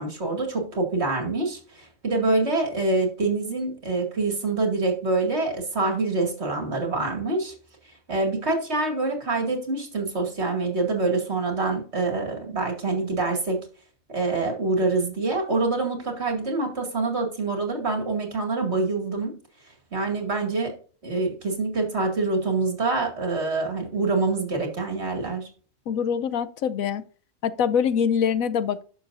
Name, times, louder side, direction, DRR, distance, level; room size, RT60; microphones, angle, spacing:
voice 1, 0.0-7.5 8.1-13.6 14.1-19.4 19.9-20.8 21.0-25.5, right 3 dB, 50° right, 2.5 m, -26 dB
voice 2, 25.9-27.0 27.4-28.8, left 7 dB, 85° left, 1.1 m, -24 dB
11.0 x 6.7 x 2.6 m
omnidirectional pair, 1.4 m